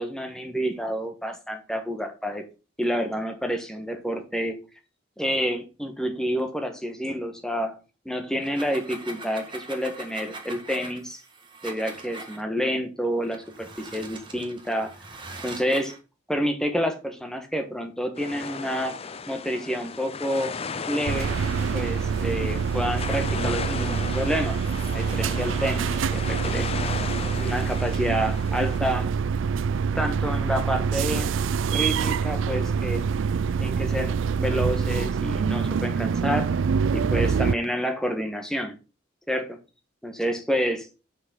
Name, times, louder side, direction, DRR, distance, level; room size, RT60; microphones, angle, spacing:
voice 1, 0.0-2.4 2.8-4.6 5.2-7.8 8.0-11.2 11.6-14.9 15.4-15.9 16.3-19.0 19.3-20.5 20.9-21.3 21.7-24.6 24.9-26.7 27.3-29.1 29.9-31.3 31.7-33.1 33.6-34.1 34.4-36.5 36.9-38.7 39.3-39.6 40.0-40.8, equal, 5° left, 5 dB, 1.4 m, -28 dB
sound 1, 8.3-12.4 13.2-16.0, right 3 dB, 25° right, 1.6 m, -41 dB
sound 2, 18.2-28.8, left 5 dB, 30° left, 0.5 m, -36 dB
sound 3, 21.1-37.5, right 6 dB, 70° right, 0.4 m, -25 dB
6.3 x 6.0 x 6.3 m, 0.32 s
head